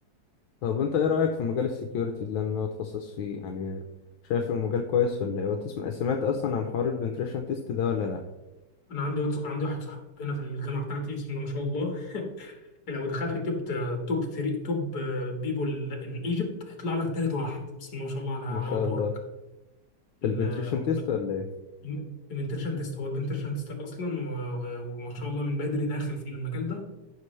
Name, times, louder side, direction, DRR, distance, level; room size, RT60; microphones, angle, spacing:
voice 1, 0.6-3.8 4.3-8.2 18.5-19.1 20.2-21.4, left 6 dB, 70° left, 3 dB, 1.5 m, -28 dB
voice 2, 8.9-12.6 12.9-19.1 20.2-20.9 21.8-26.9, left 2 dB, 50° left, 2 dB, 2.1 m, -31 dB
14.5 x 6.0 x 3.2 m, 1.0 s
omnidirectional pair, 2.4 m